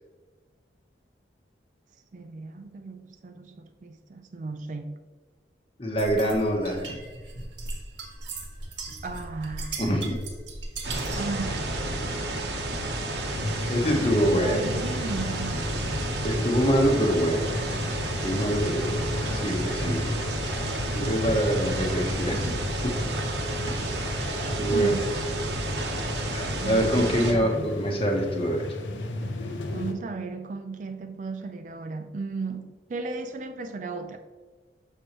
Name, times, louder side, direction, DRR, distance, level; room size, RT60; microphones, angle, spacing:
voice 1, 2.1-5.0 9.0-9.8 11.2-12.7 13.9-15.7 24.7-25.1 26.4-27.8 29.7-34.2, right 3 dB, 40° right, 0.4 m, -36 dB
voice 2, 5.8-7.0 9.8-10.2 13.7-14.8 16.2-17.6 18.2-19.0 19.3-20.1 20.9-22.9 23.7-24.2 24.6-25.0 26.3-28.7, equal, 30° left, 1.0 m, -25 dB
sound 1, 6.0-11.3, right 3 dB, 90° right, 1.2 m, -38 dB
sound 2, 10.8-27.3, right 1 dB, 70° right, 0.9 m, -31 dB
sound 3, 13.3-29.9, left 2 dB, 85° left, 0.7 m, -35 dB
6.5 x 6.1 x 3.0 m
head